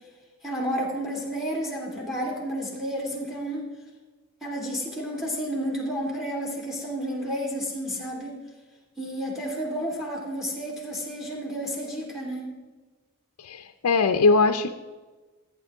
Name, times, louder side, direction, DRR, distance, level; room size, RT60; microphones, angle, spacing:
voice 1, 0.4-3.7 4.4-8.4 9.0-12.5, equal, ahead, -2 dB, 2.5 m, -31 dB
voice 2, 13.4-14.7, left 4 dB, 85° left, 6 dB, 0.5 m, -21 dB
14.5 x 8.9 x 3.6 m, 1.3 s
head